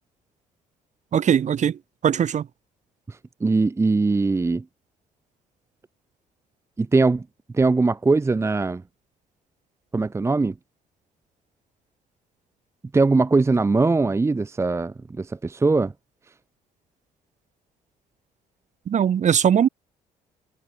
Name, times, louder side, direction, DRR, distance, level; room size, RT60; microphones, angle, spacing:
voice 1, 1.1-1.8 2.0-2.5 18.9-19.7, right 8 dB, 55° right, 3.4 m, -20 dB
voice 2, 3.1-4.6 6.8-7.2 7.5-8.8 9.9-10.5 12.9-15.9, right 3 dB, 20° right, 0.7 m, -21 dB
supercardioid pair, 80°, 15 cm